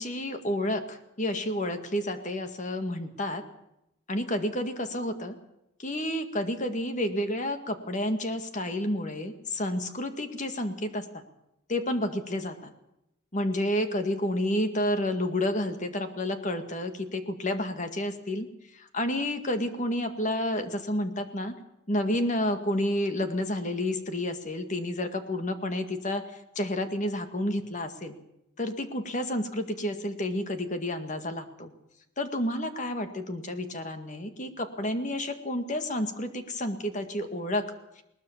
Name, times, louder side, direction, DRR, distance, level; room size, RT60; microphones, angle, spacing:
voice 1, 0.0-3.4 4.1-5.4 5.8-11.2 11.7-12.7 13.3-18.5 18.7-21.5 21.9-26.2 26.6-28.2 28.6-31.7 32.2-38.0, left 1 dB, 35° left, 8 dB, 1.9 m, -30 dB
20.5 x 19.5 x 7.2 m, 0.83 s
head